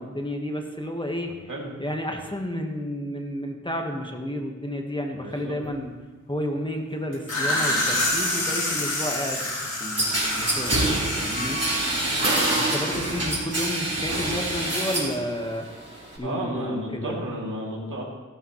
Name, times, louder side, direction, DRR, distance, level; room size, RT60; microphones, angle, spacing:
voice 1, 0.0-1.3 1.8-5.9 6.3-11.6 12.5-15.6 16.2-17.2, equal, 15° left, 2 dB, 1.3 m, -31 dB
voice 2, 5.1-5.6 12.0-12.2 16.2-18.0, right 1 dB, 80° right, -3 dB, 2.7 m, -32 dB
sound 1, 7.1-12.7, left 1 dB, 85° left, 4.5 m, -28 dB
sound 2, 10.0-15.2 15.5-16.2, right 1 dB, 50° right, 3.5 m, -25 dB
14.0 x 12.5 x 3.1 m, 1.3 s
wide cardioid pair, 85°, 31 cm